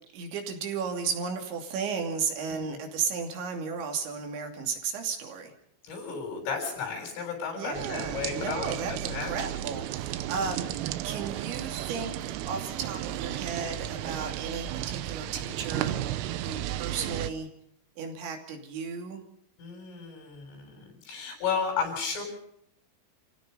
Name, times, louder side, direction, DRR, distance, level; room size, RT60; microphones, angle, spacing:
voice 1, 0.1-5.5 7.6-10.7 11.0-17.5 18.0-19.2, right 5 dB, 70° right, 4 dB, 4.9 m, -34 dB
voice 2, 5.8-9.3 14.0-14.3 19.6-22.2, left 6 dB, 85° left, 2 dB, 10.0 m, -34 dB
sound 1, 7.7-17.3, right 13 dB, 90° right, 3.5 m, -34 dB
29.5 x 16.5 x 5.5 m, 0.70 s
omnidirectional pair, 5.6 m